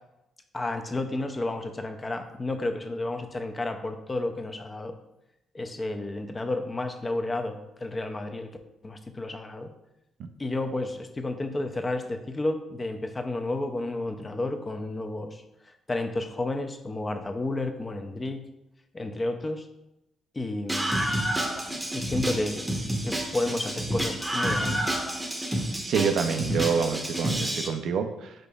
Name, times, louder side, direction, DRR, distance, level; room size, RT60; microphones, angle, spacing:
voice 1, 0.5-4.9 5.5-8.6 8.8-9.7 10.4-15.4 15.9-18.5 18.9-19.7 20.3-21.0 21.9-22.7 23.0-25.0, left 2 dB, 25° left, 6 dB, 0.4 m, -31 dB
Screaming, 20.7-27.7, right 1 dB, 10° right, 0.7 m, -29 dB
voice 2, 25.9-28.5, right 6 dB, 70° right, 7 dB, 0.4 m, -27 dB
5.1 x 3.9 x 2.3 m, 0.89 s
cardioid pair, 90°, 0 cm